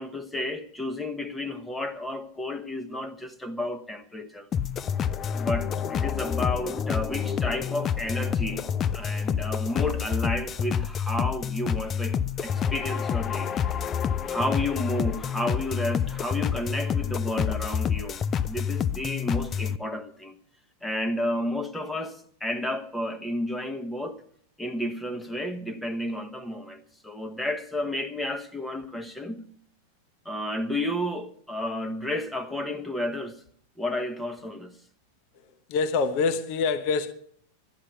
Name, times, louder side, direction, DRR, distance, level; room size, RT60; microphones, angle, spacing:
voice 1, 0.0-4.5 5.4-13.5 14.3-20.3 20.8-24.2 24.6-29.5 30.2-33.4 33.8-34.7, left 1 dB, 5° left, 1.2 m, -32 dB
sound 1, 4.5-19.8, left 8 dB, 25° left, 0.5 m, -28 dB
voice 2, 35.7-37.1, left 4 dB, 45° left, 1.0 m, -25 dB
12.5 x 11.5 x 6.9 m
figure-of-eight pair, 90°, 0 cm